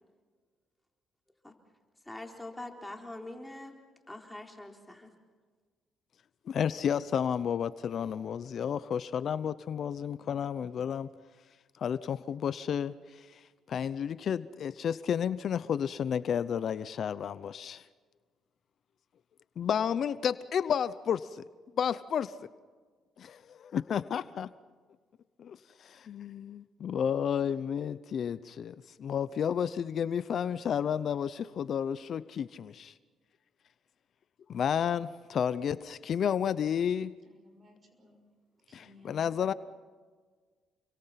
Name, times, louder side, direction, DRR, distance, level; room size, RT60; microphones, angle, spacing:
voice 1, 2.1-3.7 4.1-5.1, left 2 dB, 10° left, 2 dB, 3.9 m, -43 dB
voice 2, 6.5-11.1 11.8-13.4 13.7-17.8 19.6-21.3 21.8-22.3 23.2-24.5 25.4-32.9 34.5-37.1 38.7-39.5, left 8 dB, 60° left, 15 dB, 0.7 m, -31 dB
voice 3, 37.2-38.2 38.7-39.6, left 2 dB, 35° right, 6 dB, 6.3 m, -58 dB
29.5 x 23.5 x 5.9 m, 1.5 s
cardioid pair, 90°, 0 cm